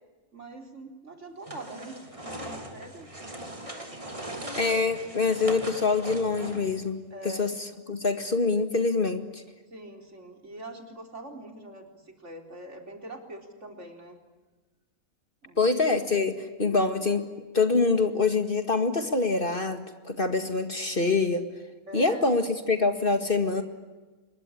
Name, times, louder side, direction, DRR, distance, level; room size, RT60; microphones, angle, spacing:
voice 1, 0.3-3.1 7.1-7.4 9.7-14.2 15.4-15.7 21.9-22.3, right 1 dB, 55° right, 4 dB, 4.3 m, -43 dB
sound 1, 1.4-6.8, right 1 dB, 20° right, 3.3 m, -39 dB
voice 2, 4.6-7.0 7.4-7.5 7.9-9.4 15.6-17.2 17.5-21.4 21.9-23.6, left 3 dB, 40° left, 8 dB, 2.1 m, -25 dB
26.5 x 22.5 x 9.9 m, 1.2 s
omnidirectional pair, 1.5 m